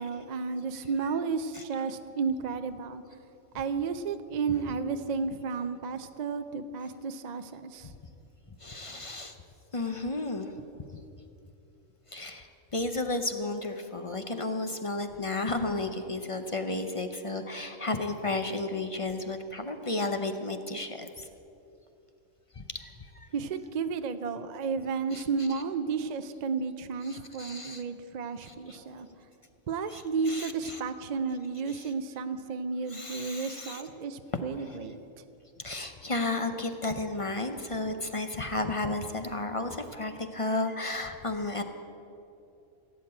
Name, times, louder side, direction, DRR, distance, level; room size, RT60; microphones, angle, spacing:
voice 1, 0.0-3.0 3.5-7.9 23.3-29.1 29.7-35.0, right 5 dB, 55° right, 10 dB, 0.4 m, -32 dB
voice 2, 8.6-9.4 9.7-10.5 12.1-21.3 22.5-23.3 25.1-25.6 27.0-27.8 28.4-29.0 29.9-30.8 31.7-31.9 32.9-33.8 34.6-34.8 35.6-41.6, left 2 dB, 35° left, 7 dB, 0.5 m, -33 dB
16.5 x 8.1 x 8.6 m, 2.8 s
omnidirectional pair, 1.5 m